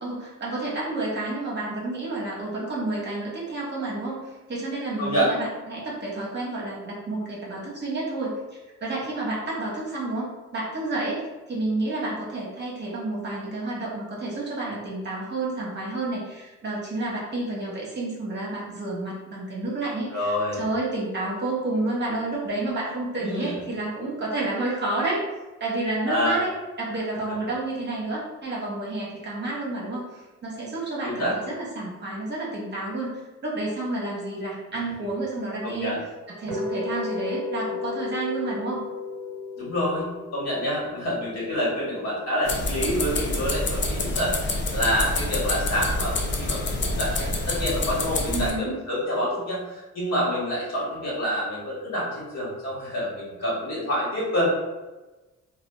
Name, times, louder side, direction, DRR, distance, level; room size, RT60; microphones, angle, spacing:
voice 1, 0.0-8.3 8.8-11.2 11.5-20.3 20.6-25.2 25.6-26.5 26.8-36.0 36.3-38.8 48.3-48.8, right 2 dB, 35° right, -4 dB, 0.9 m, -30 dB
voice 2, 5.0-5.3 20.1-20.6 23.2-23.6 26.1-26.4 31.0-31.4 35.6-36.0 39.6-54.5, equal, 60° left, -6 dB, 1.3 m, -27 dB
sound 1, 36.5-42.6, left 3 dB, 60° right, 0.6 m, -34 dB
sound 2, 42.5-48.5, left 2 dB, 40° left, 0.5 m, -27 dB
2.8 x 2.2 x 2.2 m, 1.1 s
cardioid pair, 90°, 30 cm